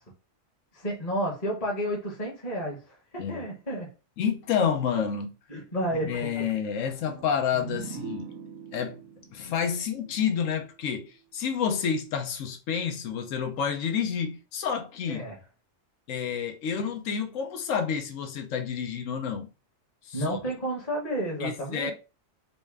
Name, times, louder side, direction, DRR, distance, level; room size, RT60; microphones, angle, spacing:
voice 1, 0.7-3.9 5.5-6.3 15.1-15.3 20.1-21.9, right 1 dB, 30° left, 1.1 m, -31 dB
voice 2, 4.2-5.3 6.0-8.3 8.7-9.0 9.3-15.2 16.1-19.5 20.0-20.4 21.4-21.9, left 7 dB, 80° left, 1.1 m, -29 dB
sound 1, 7.0-10.7, right 6 dB, 65° right, 0.9 m, -42 dB
4.1 x 2.2 x 3.5 m
omnidirectional pair, 1.4 m